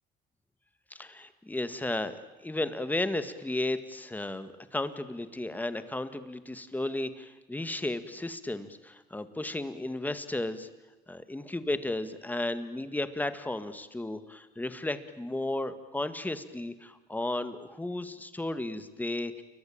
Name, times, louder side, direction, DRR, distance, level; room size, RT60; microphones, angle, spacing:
voice 1, 0.9-2.2 2.4-10.7 11.1-19.4, left 2 dB, 10° left, 11 dB, 2.0 m, -34 dB
29.0 x 23.5 x 8.8 m, 1.1 s
cardioid pair, 110°, 17 cm